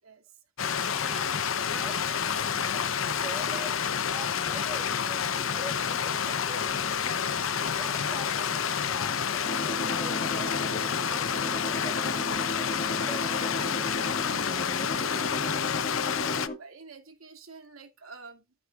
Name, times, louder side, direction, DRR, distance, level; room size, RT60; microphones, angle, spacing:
voice 1, 0.0-0.4 14.8-15.2 16.4-18.6, right 4 dB, 85° right, 2.7 m, -49 dB
Stream, 0.6-16.5, left 7 dB, 70° left, 0.8 m, -29 dB
voice 2, 0.8-14.4, equal, ahead, 2.1 m, -45 dB
sound 1, 9.5-16.6, left 1 dB, 40° left, 2.1 m, -36 dB
13.0 x 9.1 x 2.5 m
head